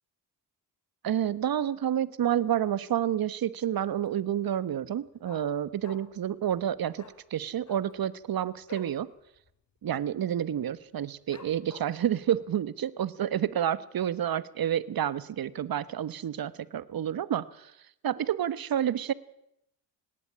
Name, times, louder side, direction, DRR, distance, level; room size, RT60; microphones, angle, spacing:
voice 1, 1.0-7.0 7.3-9.1 9.8-17.4 18.0-19.1, right 10 dB, 55° right, 17 dB, 1.3 m, -29 dB
Dog, 3.8-4.2 4.5-4.6 4.8-6.3 6.5-6.7 6.9-7.2 7.6-9.0 9.3-9.5 9.8-10.2 10.6-10.7 11.3-12.1 12.6-12.7, left 5 dB, 40° left, 3.4 m, -50 dB
18.5 x 18.5 x 8.8 m, 0.79 s
cardioid pair, 70°, 42 cm